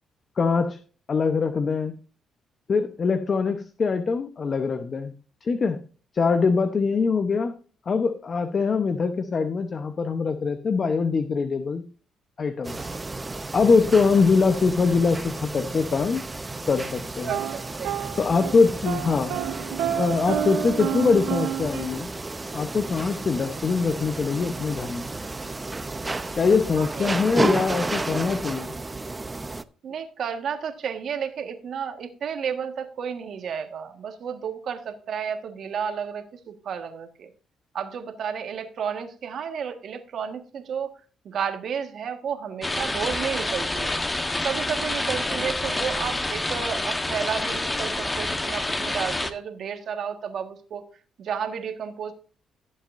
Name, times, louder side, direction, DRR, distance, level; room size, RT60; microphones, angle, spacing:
voice 1, 0.4-0.8 1.1-2.0 2.7-5.1 5.4-5.8 6.1-7.5 7.9-11.8 12.4-12.9 13.5-16.2 16.7-17.3 18.2-19.4 20.0-22.1 22.5-25.1 26.4-28.8, left 4 dB, 45° left, 8 dB, 0.9 m, -23 dB
sound 1, 12.6-29.6, right 3 dB, 20° right, 0.6 m, -32 dB
voice 2, 17.2-18.1 26.8-27.1 29.8-37.3 37.7-40.9 41.2-44.0 44.4-50.9 51.2-52.1, right 7 dB, 65° right, 6 dB, 1.6 m, -32 dB
sound 2, 17.3-18.6 18.9-21.9, right 10 dB, 85° right, 0.9 m, -29 dB
sound 3, 42.6-49.3, left 2 dB, 15° left, 1.1 m, -28 dB
16.0 x 7.4 x 2.6 m, 0.39 s
cardioid pair, 90°, 0 cm